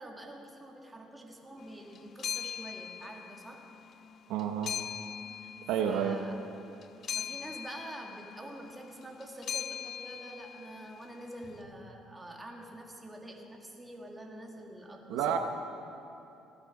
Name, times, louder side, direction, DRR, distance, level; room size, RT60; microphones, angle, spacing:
voice 1, 0.0-3.7 5.4-5.5 5.8-6.4 7.1-15.4, right 1 dB, 15° right, 0 dB, 2.0 m, -46 dB
sound 1, 1.6-11.6, left 8 dB, 50° left, 0.3 m, -41 dB
voice 2, 4.3-4.8 5.7-6.2 15.1-15.4, right 8 dB, 85° right, 5 dB, 0.9 m, -30 dB
16.0 x 12.0 x 5.4 m, 2.8 s
cardioid pair, 100°, 0 cm